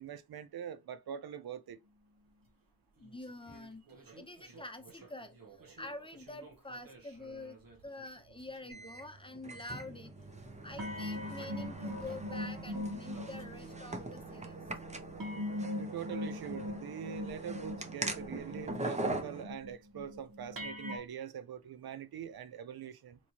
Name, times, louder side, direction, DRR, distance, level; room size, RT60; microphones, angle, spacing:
voice 1, 0.0-1.8 15.8-23.2, right 8 dB, 90° right, 0.5 m, -44 dB
voice 2, 3.0-3.9 4.2-5.4 5.8-7.6 7.8-10.1 10.6-14.5, left 2 dB, 15° left, 0.7 m, -46 dB
sound 1, 3.0-8.2 8.5-8.8 9.4-10.1 10.8-14.3 15.2-21.0, left 1 dB, 70° right, 1.0 m, -42 dB
sound 2, 8.7-19.4, right 2 dB, 20° right, 0.7 m, -42 dB
sound 3, 10.2-15.3, left 3 dB, 60° left, 0.7 m, -59 dB
4.2 x 3.0 x 2.8 m
wide cardioid pair, 120°, 36 cm